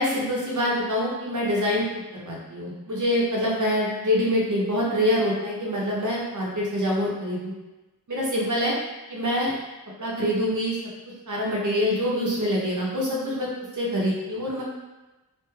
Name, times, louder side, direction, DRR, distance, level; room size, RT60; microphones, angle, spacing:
voice 1, 0.0-1.8 2.2-7.5 8.1-8.7 9.1-9.5 10.0-10.8 11.3-13.5 13.8-14.6, equal, 50° right, -4 dB, 0.7 m, -25 dB
3.0 x 2.6 x 2.3 m, 1.1 s
wide cardioid pair, 75°, 40 cm